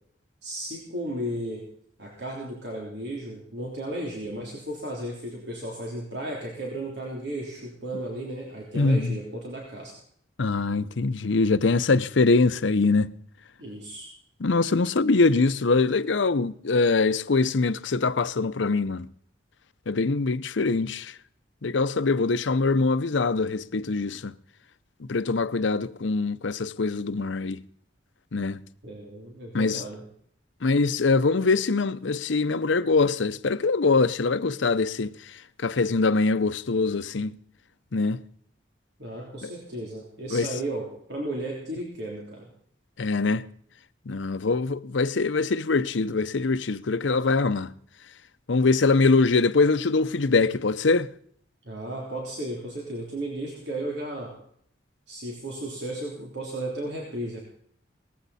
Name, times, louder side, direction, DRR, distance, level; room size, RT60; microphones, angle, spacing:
voice 1, 0.4-1.7 2.0-9.9 13.6-14.1 28.8-30.0 39.0-42.5 51.6-54.4 55.1-57.4, right 1 dB, 65° right, 3.3 m, -34 dB
voice 2, 8.7-9.2 10.4-13.1 14.4-19.1 19.9-21.1 21.6-24.3 25.1-27.6 28.3-28.6 29.5-29.8 30.6-35.1 35.6-37.3 37.9-38.2 39.4-39.5 40.3-40.5 43.0-43.4 44.1-47.7 48.5-51.1, left 3 dB, 85° left, 0.7 m, -23 dB
19.0 x 14.5 x 4.2 m
head